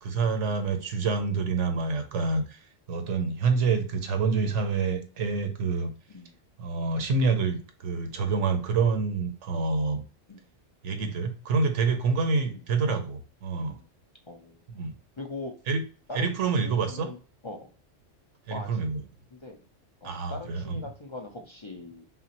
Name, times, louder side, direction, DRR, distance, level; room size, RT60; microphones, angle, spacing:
voice 1, 0.0-2.6 2.9-5.9 6.6-10.0 10.8-13.8 14.7-14.9 15.7-15.8 16.1-17.1 18.5-19.0 20.0-20.8, right 4 dB, 70° right, 7 dB, 1.1 m, -27 dB
voice 2, 14.3-14.9 15.2-15.5 16.1-17.2 17.4-17.7 18.5-18.9 19.3-19.6 20.0-22.1, left 2 dB, 35° left, 2 dB, 0.5 m, -41 dB
5.8 x 2.0 x 2.9 m, 0.37 s
omnidirectional pair, 1.3 m